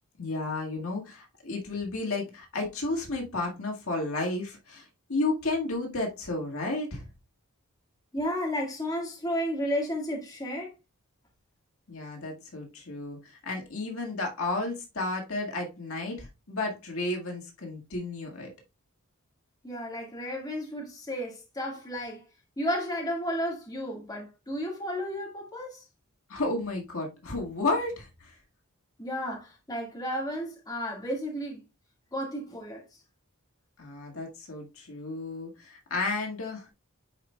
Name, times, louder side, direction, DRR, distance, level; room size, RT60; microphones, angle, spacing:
voice 1, 0.2-7.0 11.9-18.5 26.3-28.4 33.8-36.7, left 2 dB, 70° left, 1.8 m, -32 dB
voice 2, 8.1-10.7 19.6-22.3 22.6-25.8 29.0-31.6 32.1-32.8, equal, 15° left, 1.8 m, -33 dB
10.0 x 4.5 x 2.3 m
head